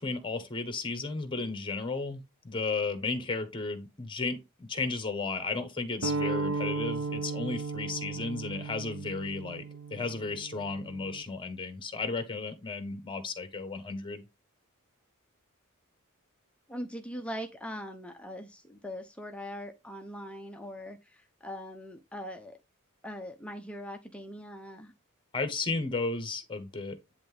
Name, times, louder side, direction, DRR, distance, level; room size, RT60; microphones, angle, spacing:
voice 1, 0.0-9.6 9.9-14.2 25.3-27.0, left 3 dB, 25° left, 1.4 m, -34 dB
sound 1, 6.0-11.2, right 3 dB, 70° right, 0.6 m, -35 dB
voice 2, 16.7-22.6 23.0-24.9, equal, 5° left, 0.8 m, -41 dB
10.0 x 3.5 x 3.4 m
head